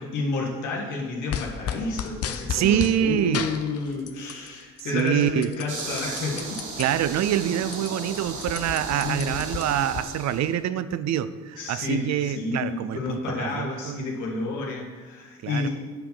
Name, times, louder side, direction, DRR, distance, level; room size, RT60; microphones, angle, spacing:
voice 1, 0.0-6.6 8.9-9.4 11.6-15.7, left 3 dB, 85° left, -1 dB, 1.8 m, -30 dB
sound 1, 1.3-3.0 3.3-4.5 4.8-6.8 7.3-7.4 7.6-10.0, left 9 dB, 50° left, 0.7 m, -33 dB
voice 2, 2.5-3.5 4.9-5.5 6.8-14.1 15.4-15.7, right 10 dB, 65° right, 14 dB, 0.5 m, -25 dB
sound 2, 5.7-10.5, right 3 dB, 85° right, 1.5 m, -36 dB
8.8 x 4.9 x 5.6 m, 1.4 s
cardioid pair, 90°, 30 cm